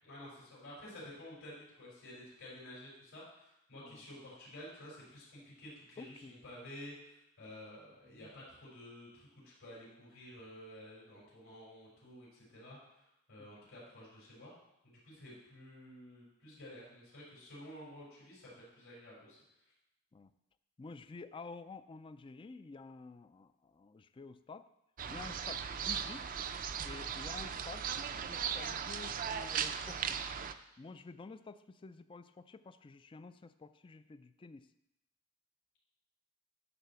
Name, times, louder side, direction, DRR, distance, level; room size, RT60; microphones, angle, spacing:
voice 1, 0.0-14.5 14.8-19.4, left 1 dB, 70° left, -7 dB, 4.2 m, -52 dB
voice 2, 6.0-6.3 8.1-8.3 20.1-20.3 20.8-24.7 25.1-26.3 26.8-27.9 28.3-30.2 30.8-34.7, left 4 dB, 25° left, 12 dB, 0.3 m, -50 dB
sound 1, 25.0-30.5, right 7 dB, 40° right, 0.5 m, -38 dB
11.0 x 4.2 x 6.9 m, 0.85 s
head